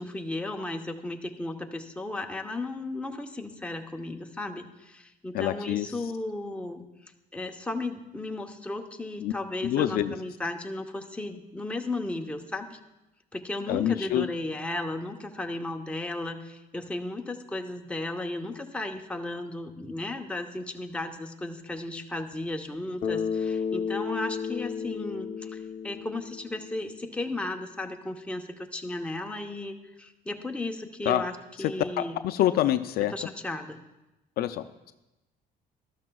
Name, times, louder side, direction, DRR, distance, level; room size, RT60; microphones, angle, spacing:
voice 1, 0.0-6.8 7.3-12.8 13.3-32.2 33.1-33.8, left 2 dB, 5° left, 3 dB, 0.8 m, -35 dB
voice 2, 5.3-5.9 9.2-9.3 9.6-10.1 13.7-14.3 31.1-31.2 31.6-33.1 34.4-34.7, left 12 dB, 65° left, 10 dB, 0.5 m, -26 dB
Bass guitar, 23.0-27.2, left 6 dB, 40° left, 0.8 m, -33 dB
13.0 x 12.5 x 2.3 m, 0.98 s
cardioid pair, 110°, 17 cm